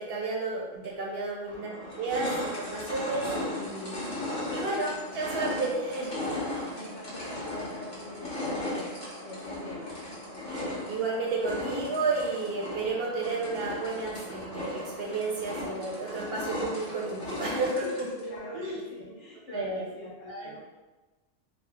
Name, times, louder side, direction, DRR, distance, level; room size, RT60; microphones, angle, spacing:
voice 1, 0.0-6.2 6.5-6.7 10.5-18.1 18.5-18.8 19.5-19.9 20.3-20.5, right 3 dB, 65° right, -3 dB, 0.7 m, -32 dB
sound 1, 0.8-0.9 1.5-18.3, left 1 dB, 40° left, 0.9 m, -36 dB
voice 2, 6.6-8.9 9.2-9.9 18.2-20.6, left 1 dB, 70° left, -6 dB, 1.2 m, -44 dB
3.1 x 2.0 x 3.4 m, 1.2 s
omnidirectional pair, 1.3 m